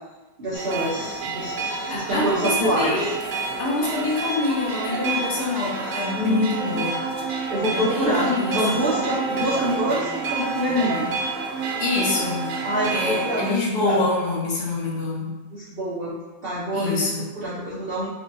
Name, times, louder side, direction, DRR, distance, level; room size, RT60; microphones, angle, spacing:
voice 1, 0.4-3.1 6.1-6.9 7.5-11.1 12.6-13.6 13.8-14.1 15.5-18.1, equal, 65° right, -8 dB, 0.6 m, -26 dB
sound 1, 0.5-13.5, right 4 dB, 80° right, 1.2 m, -29 dB
voice 2, 1.9-3.1 3.6-7.0 7.7-8.6 11.8-12.5 12.9-15.3 16.7-17.3, left 3 dB, 70° left, -4 dB, 1.3 m, -25 dB
4.9 x 2.1 x 2.6 m, 1.2 s
omnidirectional pair, 1.8 m